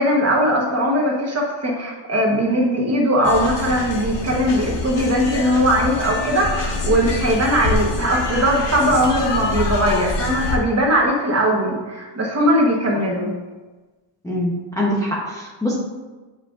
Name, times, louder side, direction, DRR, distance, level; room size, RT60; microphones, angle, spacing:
voice 1, 0.0-13.3, equal, 30° right, -2 dB, 1.1 m, -19 dB
sound 1, 3.2-10.6, left 3 dB, 60° left, 1.0 m, -25 dB
voice 2, 14.2-15.8, left 1 dB, 5° left, -5 dB, 0.7 m, -23 dB
7.3 x 5.6 x 2.5 m, 1.2 s
wide cardioid pair, 165°, 50 cm